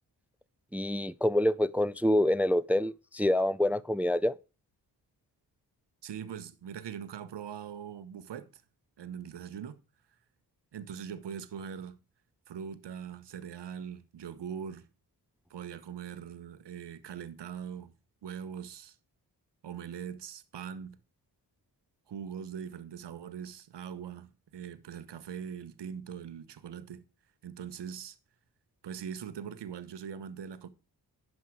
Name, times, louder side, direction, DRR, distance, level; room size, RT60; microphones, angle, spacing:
voice 1, 0.7-4.3, left 1 dB, 5° right, 0.4 m, -26 dB
voice 2, 6.0-8.6 9.0-9.8 10.7-12.0 12.5-14.9 15.5-17.9 18.2-19.0 19.6-21.0 22.1-27.0 27.4-28.2 28.8-30.7, right 8 dB, 75° right, 1.1 m, -41 dB
10.5 x 5.6 x 4.7 m
cardioid pair, 55°, 42 cm